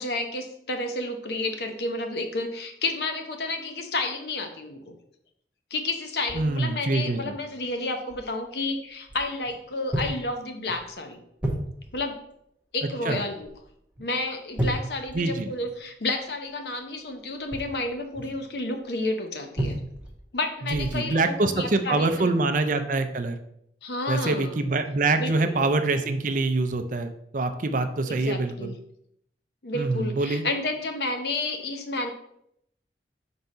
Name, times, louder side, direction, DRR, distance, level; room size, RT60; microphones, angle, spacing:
voice 1, 0.0-5.0 5.7-11.2 11.9-12.2 12.7-13.5 14.0-19.8 20.3-22.3 23.8-24.6 25.2-25.6 28.1-28.7 29.6-32.1, left 2 dB, 65° left, 5 dB, 0.9 m, -31 dB
sound 1, 6.3-6.6 7.2-7.3 8.1-8.3 9.1-9.6 9.9-10.3 10.7-10.9 11.4-12.1 13.4-13.7 13.9-14.1 14.6-15.8 17.3-18.4 19.6-20.2 20.7-21.1 21.6-21.8, right 1 dB, 5° right, 0.9 m, -32 dB
voice 2, 6.3-7.3 13.1-13.2 15.1-15.5 20.7-23.4 24.1-28.7 29.7-30.4, right 3 dB, 45° right, 8 dB, 0.5 m, -25 dB
4.6 x 4.1 x 5.3 m, 0.74 s
head